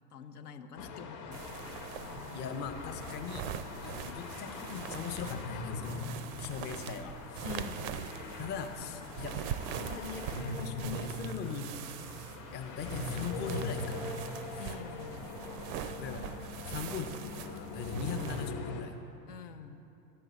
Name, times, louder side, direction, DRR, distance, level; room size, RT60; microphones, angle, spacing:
voice 1, 0.1-1.7 7.4-8.1 14.6-15.4 19.3-19.9, left 6 dB, 75° left, 8 dB, 0.7 m, -46 dB
sound 1, 0.8-18.8, left 2 dB, 50° left, 1.1 m, -41 dB
sound 2, 1.3-18.5, right 9 dB, 40° right, 0.4 m, -43 dB
voice 2, 2.3-3.5 3.8-7.5 8.4-11.9 12.5-14.2 14.5-14.6 15.7-16.3 16.7-19.0, left 7 dB, 25° left, 5 dB, 0.5 m, -41 dB
10.5 x 7.7 x 4.0 m, 2.8 s
hypercardioid pair, 95°, 47 cm